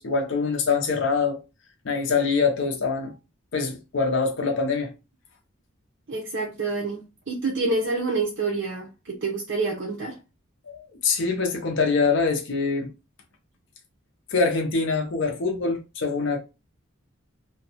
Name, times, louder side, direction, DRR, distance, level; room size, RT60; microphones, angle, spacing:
voice 1, 0.0-1.4 1.8-3.1 3.5-4.9 10.7-12.9 14.3-16.4, left 4 dB, 60° left, 0.6 m, -24 dB
voice 2, 6.1-10.2, right 3 dB, 55° right, 0.7 m, -27 dB
2.6 x 2.2 x 2.8 m
head